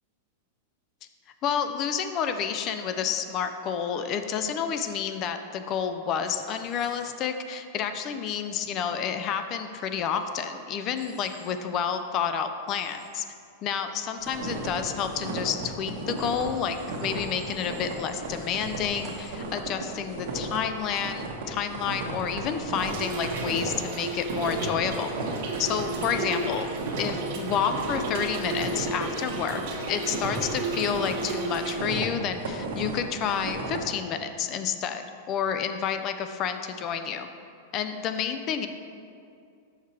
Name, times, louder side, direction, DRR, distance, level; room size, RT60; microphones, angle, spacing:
voice 1, 1.4-13.2 13.6-25.1 25.6-26.7 27.0-29.6 29.9-37.3 37.7-38.7, left 7 dB, 35° left, 8 dB, 0.4 m, -30 dB
Human voice / Train, 6.2-7.1 11.0-11.5 12.7-13.1 16.2-19.3, right 2 dB, 15° right, 0.8 m, -50 dB
sound 1, 14.2-33.8, right 2 dB, 75° right, 1.1 m, -35 dB
Trickle dribble / Fill (with liquid), 22.8-31.8, right 2 dB, 55° right, 1.0 m, -34 dB
5.7 x 4.7 x 4.3 m, 2.4 s
supercardioid pair, 145°, 0 cm